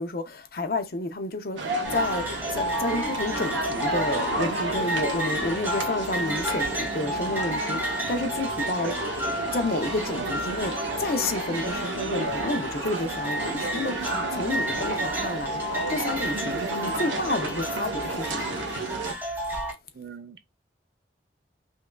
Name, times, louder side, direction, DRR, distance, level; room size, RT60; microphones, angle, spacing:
voice 1, 0.0-2.3 2.5-8.9 9.5-15.6 15.9-18.7, left 2 dB, 50° left, 0.6 m, -30 dB
sound 1, 1.6-19.1, right 2 dB, 90° right, 0.8 m, -32 dB
sound 2, 1.8-19.7, equal, 10° right, 0.9 m, -32 dB
voice 2, 14.8-15.1 19.9-20.4, right 5 dB, 60° right, 0.5 m, -40 dB
5.2 x 2.4 x 2.3 m
head